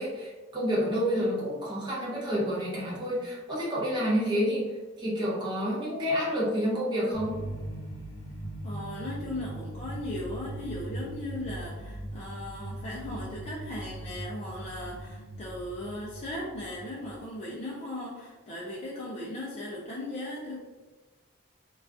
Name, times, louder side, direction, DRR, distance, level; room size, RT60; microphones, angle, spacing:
voice 1, 0.0-7.4, equal, 20° right, -7 dB, 0.7 m, -29 dB
sound 1, 7.1-17.3, right 1 dB, 75° left, 0.8 m, -40 dB
voice 2, 8.6-20.6, left 1 dB, 30° left, -6 dB, 0.4 m, -37 dB
2.3 x 2.3 x 2.4 m, 1.3 s
head